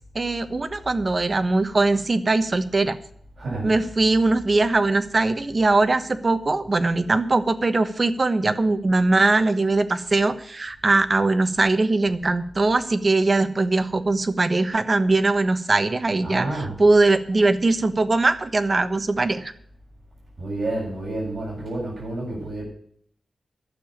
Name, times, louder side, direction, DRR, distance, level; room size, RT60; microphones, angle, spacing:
voice 1, 0.1-3.0 3.6-19.5, right 2 dB, 35° right, 11 dB, 1.1 m, -21 dB
voice 2, 3.4-3.7 16.2-16.8 20.4-22.6, right 2 dB, 55° right, -4 dB, 7.7 m, -29 dB
12.0 x 7.0 x 8.9 m, 0.62 s
wide cardioid pair, 105°, 0 cm